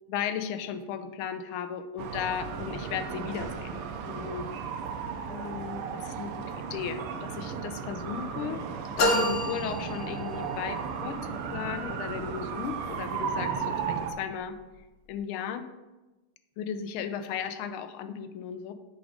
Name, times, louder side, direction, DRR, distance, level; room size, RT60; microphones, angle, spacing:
voice 1, 0.1-4.8 5.3-8.6 9.0-14.6 15.1-15.7 16.6-18.7, left 8 dB, 80° left, 9 dB, 1.4 m, -36 dB
sound 1, 2.0-14.1, right 6 dB, 85° right, 1.5 m, -35 dB
sound 2, 9.0-10.6, left 1 dB, 55° left, 1.5 m, -28 dB
5.9 x 5.2 x 5.0 m, 1.1 s
omnidirectional pair, 2.4 m